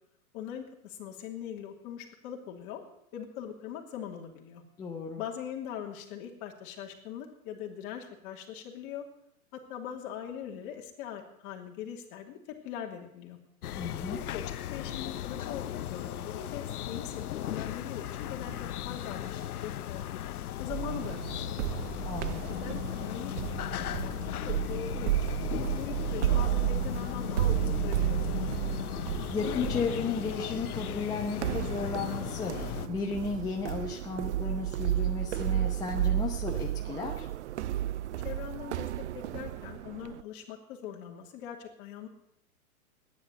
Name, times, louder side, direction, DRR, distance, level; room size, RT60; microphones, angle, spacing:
voice 1, 0.3-2.8 3.1-4.6 5.2-9.0 9.7-12.4 12.6-13.4 14.1-18.5 18.8-20.0 20.6-21.9 22.6-24.1 24.4-25.3 25.7-28.5 38.2-38.9 39.3-42.1, left 9 dB, 35° left, 1 dB, 2.9 m, -41 dB
voice 2, 4.8-5.2 13.8-14.2 22.0-22.6 29.3-37.3, left 4 dB, 10° left, 0 dB, 0.8 m, -34 dB
sound 1, 13.6-32.9, left 12 dB, 80° left, 0.8 m, -36 dB
sound 2, 20.7-40.2, right 14 dB, 55° right, 0.5 m, -33 dB
14.5 x 10.5 x 8.2 m, 0.75 s
hypercardioid pair, 145°, 44 cm